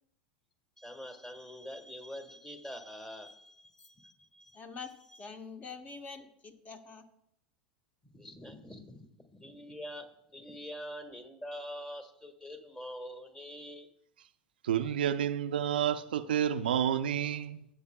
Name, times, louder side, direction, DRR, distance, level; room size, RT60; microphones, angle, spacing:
voice 1, 0.8-4.6 5.1-5.3 8.1-13.9, equal, 15° left, 1.5 m, -45 dB
voice 2, 4.5-7.0, left 5 dB, 30° left, 1.2 m, -45 dB
voice 3, 14.6-17.6, right 9 dB, 80° right, 0.4 m, -30 dB
14.5 x 7.9 x 2.2 m
hypercardioid pair, 90°, 5 cm